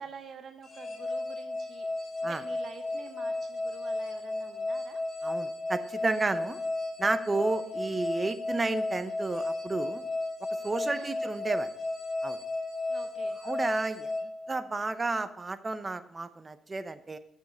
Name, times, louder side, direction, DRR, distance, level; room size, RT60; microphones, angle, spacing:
voice 1, 0.0-1.9 2.2-5.0 7.4-7.8 10.9-11.3 12.9-13.9, right 6 dB, 55° right, 7 dB, 0.8 m, -48 dB
sound 1, 0.6-15.0, left 2 dB, 35° left, 1.9 m, -34 dB
voice 2, 5.2-6.6 7.0-10.0 10.6-11.7 12.2-12.4 13.4-14.1 14.5-17.2, right 3 dB, 25° right, 12 dB, 0.7 m, -32 dB
7.2 x 6.5 x 6.2 m, 0.78 s
cardioid pair, 90°, 0 cm